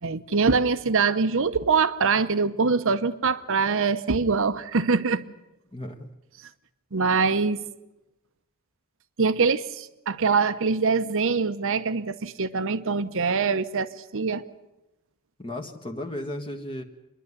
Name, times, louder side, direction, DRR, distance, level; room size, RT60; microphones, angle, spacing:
voice 1, 0.0-5.2 6.9-7.7 9.2-14.5, right 4 dB, 65° right, 0.9 m, -24 dB
voice 2, 5.7-6.1 15.4-16.8, left 1 dB, 25° left, 1.3 m, -34 dB
27.0 x 11.0 x 9.7 m
head